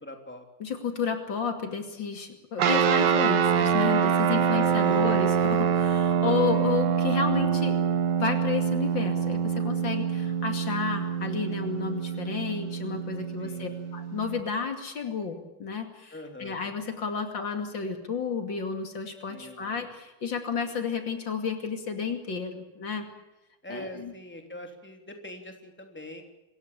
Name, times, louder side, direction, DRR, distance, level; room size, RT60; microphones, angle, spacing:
voice 1, 0.0-0.4 4.5-5.3 6.5-6.7 13.4-13.8 16.1-16.6 19.3-19.7 23.6-26.2, left 1 dB, 5° left, 4 dB, 3.2 m, -43 dB
voice 2, 0.6-7.8 8.2-16.1 16.4-23.1 23.7-24.1, left 6 dB, 75° left, 6 dB, 3.1 m, -31 dB
sound 1, 2.6-14.4, right 7 dB, 65° right, 1.7 m, -25 dB
26.5 x 15.5 x 8.8 m, 0.99 s
omnidirectional pair, 2.0 m